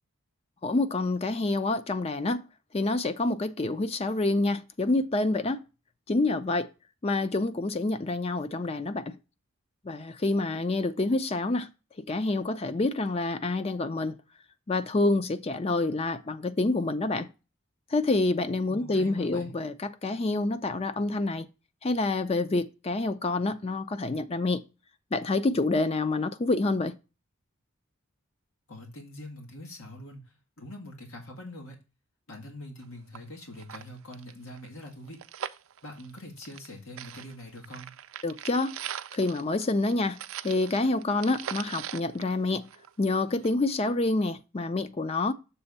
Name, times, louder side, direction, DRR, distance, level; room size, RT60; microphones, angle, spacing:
voice 1, 0.6-2.4 2.7-5.6 6.1-6.7 7.0-9.2 9.8-11.7 12.0-14.2 14.7-17.3 17.9-21.5 21.8-24.6 25.1-26.9 38.2-38.8 39.1-40.2 40.4-42.7 43.0-45.3, left 2 dB, 30° left, 0.5 m, -27 dB
voice 2, 18.7-19.5 28.7-31.8 32.3-35.2 35.8-38.0, left 1 dB, 85° left, 1.7 m, -44 dB
sound 1, 32.8-32.9 33.1-33.2 33.5-36.7 37.0-43.1 43.4-43.5, right 10 dB, 75° right, 0.5 m, -40 dB
6.9 x 3.5 x 5.3 m
head